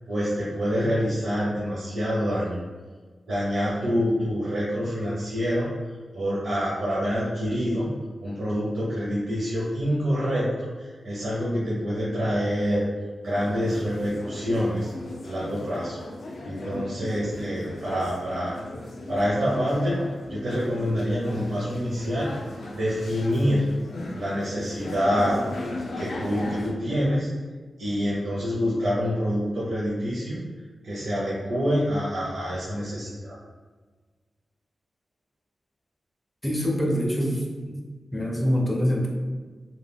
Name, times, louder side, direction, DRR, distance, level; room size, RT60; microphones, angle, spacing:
voice 1, 0.1-2.6 3.3-5.7 6.1-7.9 8.2-12.8 13.2-14.9 15.2-16.0 16.4-18.6 19.1-22.3 22.7-23.7 24.1-25.4 26.0-27.3 27.8-30.5 30.8-33.4, equal, 80° right, -7 dB, 0.5 m, -26 dB
sound 1, 13.2-26.7, left 1 dB, 70° left, 0.3 m, -37 dB
voice 2, 36.4-37.9 38.1-39.1, equal, 10° left, -1 dB, 0.5 m, -25 dB
2.2 x 2.1 x 3.3 m, 1.4 s
wide cardioid pair, 105°, 0 cm